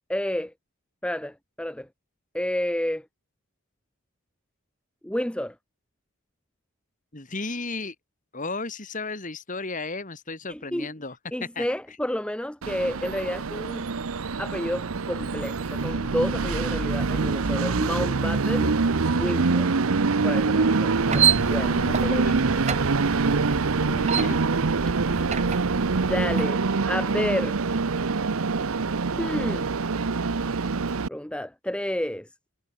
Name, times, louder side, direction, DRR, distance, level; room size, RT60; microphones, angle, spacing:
voice 1, 0.1-0.5 1.0-1.9 2.3-3.0 5.0-5.5 10.5-10.9 11.3-13.9 14.4-18.7 19.1-19.7 20.2-22.8 23.8-23.9 25.9-26.6 26.9-27.5 29.2-29.7 31.1-32.3, left 1 dB, 5° left, 0.8 m, -30 dB
voice 2, 7.1-7.9 8.3-11.2 11.6-11.7 20.8-22.4 23.8-24.4, left 3 dB, 40° left, 2.6 m, -35 dB
Train, 12.6-31.1, right 4 dB, 85° right, 0.8 m, -25 dB
sound 1, 20.9-26.5, right 7 dB, 30° right, 0.7 m, -29 dB
head